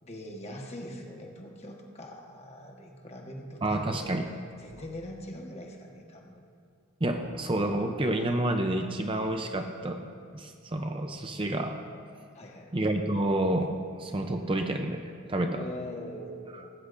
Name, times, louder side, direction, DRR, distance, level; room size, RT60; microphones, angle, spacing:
voice 1, 0.0-4.1 4.6-6.4 12.3-12.8 15.5-16.7, left 1 dB, 30° left, 1 dB, 1.3 m, -42 dB
voice 2, 3.6-4.2 7.0-10.0 10.3-11.8 12.7-13.7 14.0-15.6, right 1 dB, 25° right, 5 dB, 0.6 m, -29 dB
18.0 x 16.5 x 2.6 m, 2.2 s
head